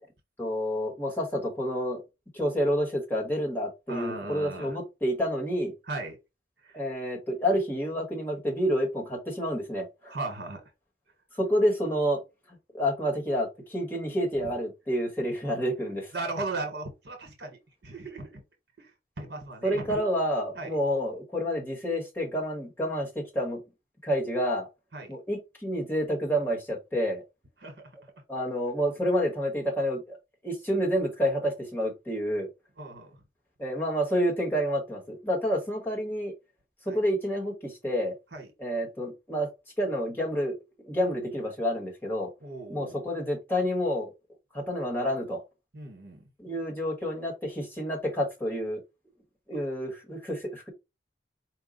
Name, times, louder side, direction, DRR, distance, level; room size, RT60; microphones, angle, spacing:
voice 1, 0.4-2.0 2.3-5.7 6.7-10.1 11.3-12.2 12.7-16.1 19.6-23.6 24.0-24.7 25.1-27.2 28.3-30.2 30.4-32.5 33.6-36.3 36.8-38.1 38.6-39.5 39.8-40.5 40.8-42.3 42.7-44.1 44.5-45.4 46.4-48.8 49.5-50.7, equal, 10° left, 1.5 m, -29 dB
voice 2, 3.9-4.8 5.9-6.2 6.6-6.8 10.1-10.6 16.1-18.4 18.8-20.0 20.5-20.8 24.9-25.2 27.6-27.9 32.8-33.1 36.8-37.0 38.3-38.5 42.4-42.9 45.7-46.2, right 2 dB, 60° right, 1.2 m, -37 dB
4.6 x 2.3 x 3.8 m
head